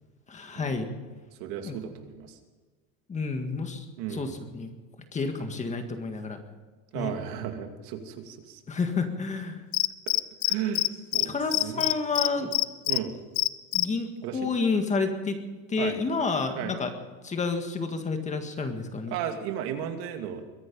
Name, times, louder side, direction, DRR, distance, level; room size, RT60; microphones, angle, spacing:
voice 1, 0.3-0.9 1.6-1.8 3.1-3.9 4.1-4.7 5.1-6.4 6.9-7.1 8.7-9.6 11.2-12.6 13.7-15.4 15.7-16.9 17.2-19.2, left 4 dB, 15° left, 6 dB, 1.8 m, -30 dB
voice 2, 1.4-2.4 4.0-4.4 6.9-8.6 10.1-10.2 10.5-10.8 11.1-11.9 12.9-13.2 14.2-14.5 15.8-16.0 16.6-16.7 19.1-20.4, right 9 dB, 60° right, 5 dB, 2.5 m, -34 dB
Cricket, 9.7-10.9 11.1-11.3 11.5-13.0 13.4-13.8, left 22 dB, 55° left, 0.7 m, -24 dB
22.5 x 11.0 x 5.5 m, 1.3 s
cardioid pair, 155°, 41 cm